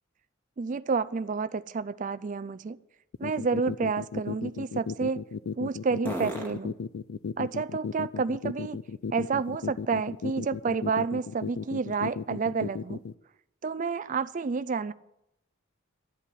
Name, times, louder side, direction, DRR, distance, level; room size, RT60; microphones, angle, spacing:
voice 1, 0.6-2.8 3.2-5.2 5.6-6.7 7.4-8.8 9.1-13.0 13.6-14.9, right 4 dB, 40° right, 15 dB, 0.4 m, -29 dB
sound 1, 3.1-13.1, left 5 dB, 85° left, 0.5 m, -34 dB
sound 2, 6.9-10.1 10.6-14.4, right 2 dB, 10° left, 2.2 m, -47 dB
12.0 x 8.3 x 9.1 m, 0.83 s
head